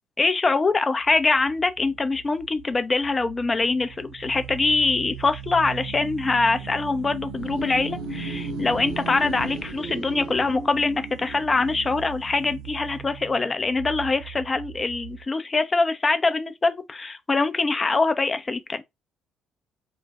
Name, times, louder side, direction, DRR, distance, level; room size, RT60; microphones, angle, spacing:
voice 1, 0.2-18.8, left 3 dB, 30° left, 0.5 m, -24 dB
sound 1, 1.1-15.2, right 5 dB, 75° right, 0.6 m, -37 dB
2.4 x 2.0 x 3.4 m
hypercardioid pair, 50°, 0 cm